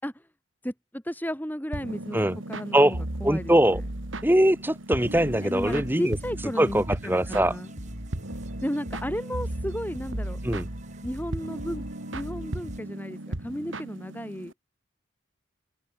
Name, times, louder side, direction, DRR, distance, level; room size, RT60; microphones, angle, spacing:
voice 1, 0.6-2.2 2.5-3.5 5.4-7.7 8.6-10.4 11.0-11.8 12.1-14.5, equal, 10° left, 5.1 m, -34 dB
sound 1, 1.7-14.5, right 1 dB, 80° right, 2.4 m, -36 dB
voice 2, 3.2-3.8 4.2-6.2 6.6-7.5 10.4-10.7, right 1 dB, 10° right, 1.6 m, -22 dB
sound 2, 5.0-12.8, equal, 35° right, 5.6 m, -41 dB
head